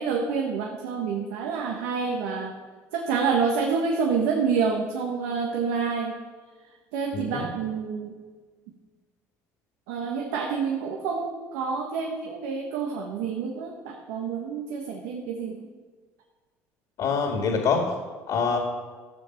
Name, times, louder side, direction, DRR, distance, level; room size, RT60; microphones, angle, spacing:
voice 1, 0.0-2.5 2.9-6.1 6.9-8.2 9.9-15.7, right 5 dB, 90° right, 1 dB, 1.4 m, -28 dB
voice 2, 7.1-7.5 17.0-17.8 18.3-18.6, left 5 dB, 65° left, 2 dB, 2.0 m, -25 dB
13.0 x 7.4 x 5.9 m, 1.4 s
supercardioid pair, 95°, 7 cm